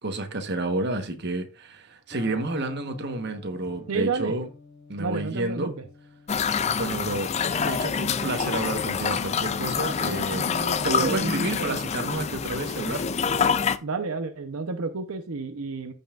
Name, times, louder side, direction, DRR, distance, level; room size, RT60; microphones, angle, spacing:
voice 1, 0.0-4.5 4.9-5.7 6.8-7.3 7.6-10.5 10.8-13.1, right 2 dB, 50° right, 1.1 m, -30 dB
Electric guitar, 2.1-9.9, left 3 dB, 15° right, 5.0 m, -50 dB
voice 2, 3.9-4.3 5.0-5.8 10.0-12.1 13.8-15.9, right 4 dB, 80° right, 0.8 m, -31 dB
sound 1, 6.3-13.8, left 6 dB, 30° left, 0.4 m, -26 dB
14.5 x 5.4 x 2.4 m
head